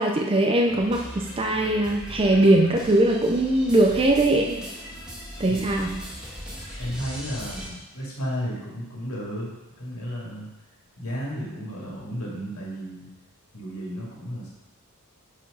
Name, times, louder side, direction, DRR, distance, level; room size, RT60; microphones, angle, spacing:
voice 1, 0.0-4.6 5.4-5.9, right 1 dB, 25° right, 2 dB, 0.5 m, -21 dB
sound 1, 0.7-7.7, equal, 5° right, 1.6 m, -39 dB
voice 2, 5.5-6.0 6.8-10.5 11.0-13.1 13.5-14.5, equal, 75° left, -4 dB, 2.3 m, -33 dB
6.0 x 5.1 x 5.5 m, 1.0 s
head